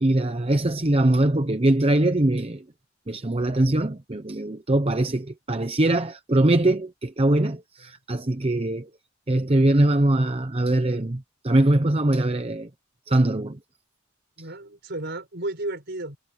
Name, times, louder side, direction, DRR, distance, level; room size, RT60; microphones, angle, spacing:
voice 1, 0.0-2.6 3.1-8.9 9.3-12.7 13.1-13.6, right 1 dB, 30° right, 0.9 m, -22 dB
voice 2, 14.4-16.2, right 2 dB, 55° right, 5.3 m, -33 dB
head